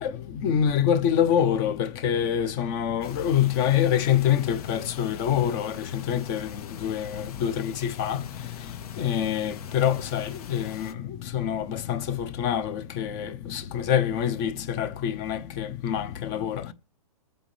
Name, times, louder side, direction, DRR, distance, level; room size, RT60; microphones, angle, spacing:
voice 1, 0.0-8.2 9.0-16.7, left 9 dB, 30° left, 0.8 m, -26 dB
sound 1, 3.0-10.9, left 7 dB, 70° left, 1.5 m, -45 dB
21.5 x 7.9 x 3.3 m
hypercardioid pair, 155°, 20 cm